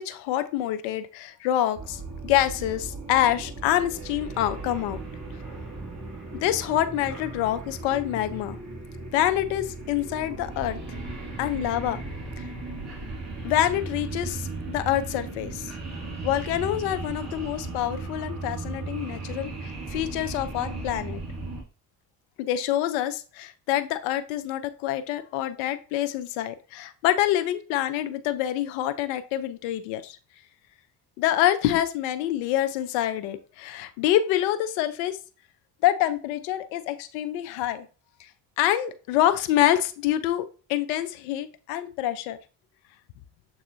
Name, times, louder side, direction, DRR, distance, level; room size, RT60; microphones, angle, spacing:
voice 1, 0.0-5.0 6.4-8.6 9.1-11.0 11.4-12.0 12.4-12.5 13.4-15.7 16.2-21.2 22.4-30.2 31.2-35.2 35.8-37.9 38.2-38.3 38.6-42.4, left 12 dB, 80° left, 11 dB, 0.6 m, -26 dB
sound 1, 1.7-21.6, right 3 dB, 35° right, 2.2 m, -36 dB
6.8 x 2.7 x 2.6 m, 0.35 s
hypercardioid pair, 60°, 46 cm